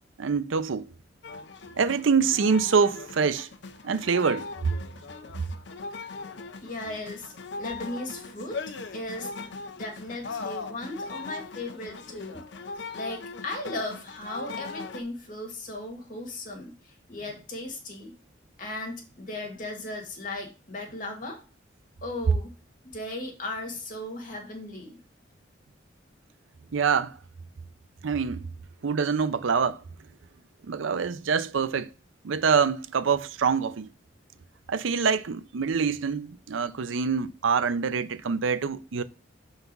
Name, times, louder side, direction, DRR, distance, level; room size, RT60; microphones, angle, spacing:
voice 1, 0.2-0.9 1.8-3.5 3.8-4.5 26.7-27.2 28.0-28.5 28.8-29.8 30.6-31.9 32.2-33.9 34.7-39.0, right 5 dB, 90° right, 0.5 m, -25 dB
sound 1, 1.2-15.0, left 4 dB, 65° left, 0.6 m, -39 dB
voice 2, 6.6-12.4 12.9-18.2 18.6-21.4 22.0-22.5 22.8-25.0, left 2 dB, 45° left, 1.7 m, -37 dB
5.8 x 3.9 x 5.3 m
head